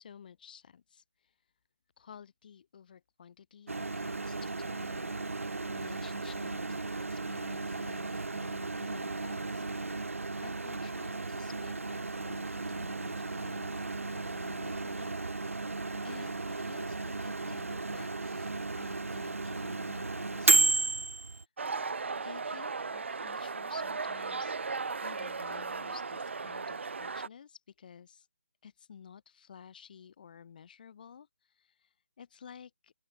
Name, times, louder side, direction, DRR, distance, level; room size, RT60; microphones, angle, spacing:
voice 1, 0.0-1.3 2.0-6.8 7.1-9.9 10.4-15.1 16.0-21.0 21.3-21.4 22.1-28.3 28.6-32.9, left 7 dB, 40° left, 4.3 m, -53 dB
Microwave oven, 3.7-21.4, right 3 dB, 80° right, 2.6 m, -34 dB
sound 1, 21.6-27.3, right 4 dB, 65° right, 3.4 m, -36 dB
open air
figure-of-eight pair, 160°, 7 cm